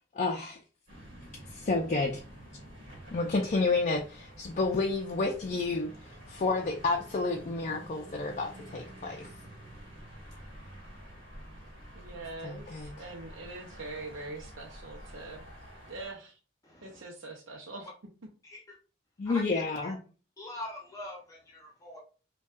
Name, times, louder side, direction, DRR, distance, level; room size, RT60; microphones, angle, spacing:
voice 1, 0.1-0.6 1.5-2.2 3.1-9.3 12.4-12.9 19.2-20.0, left 3 dB, 40° left, 1 dB, 0.4 m, -30 dB
sound 1, 0.9-16.1, equal, 50° right, 1.8 m, -49 dB
voice 2, 11.9-15.4 15.9-16.4 16.8-17.9, right 2 dB, 80° right, -1 dB, 0.6 m, -43 dB
voice 3, 16.6-17.0 18.4-18.8 19.2-19.9 20.4-22.0, left 1 dB, 20° left, -1 dB, 0.8 m, -43 dB
5.2 x 2.3 x 2.4 m, 0.36 s
head